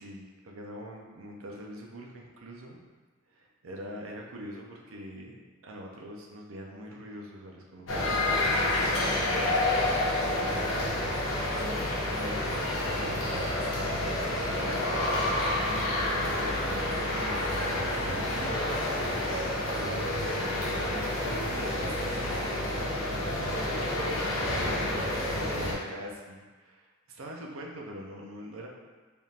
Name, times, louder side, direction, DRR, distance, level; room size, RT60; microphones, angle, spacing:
voice 1, 0.0-2.8 3.3-5.4 5.6-10.7 11.6-11.8 12.1-15.2 16.3-28.7, right 1 dB, 80° right, -1 dB, 0.5 m, -44 dB
sound 1, 7.9-25.7, left 1 dB, 70° left, 0.9 m, -29 dB
3.5 x 2.4 x 4.2 m, 1.3 s
head